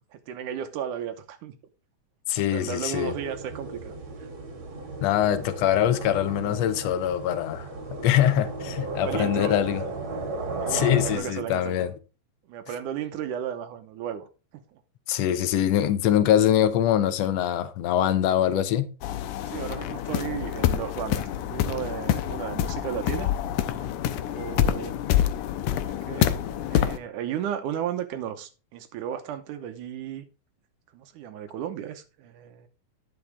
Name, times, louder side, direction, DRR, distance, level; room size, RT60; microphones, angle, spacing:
voice 1, 0.3-1.6 2.5-4.3 9.0-9.6 10.6-11.9 12.5-14.3 19.5-23.3 23.7-24.9 25.8-26.3 26.7-30.2 30.9-32.7, right 9 dB, 80° right, 2.3 m, -34 dB
voice 2, 2.3-3.1 5.0-9.8 10.7-11.9 15.1-18.9, left 11 dB, 75° left, 1.6 m, -23 dB
sound 1, 3.0-11.2, right 3 dB, 45° right, 2.3 m, -35 dB
sound 2, 19.0-27.0, left 11 dB, 90° left, 2.2 m, -27 dB
9.8 x 6.9 x 3.4 m
omnidirectional pair, 3.6 m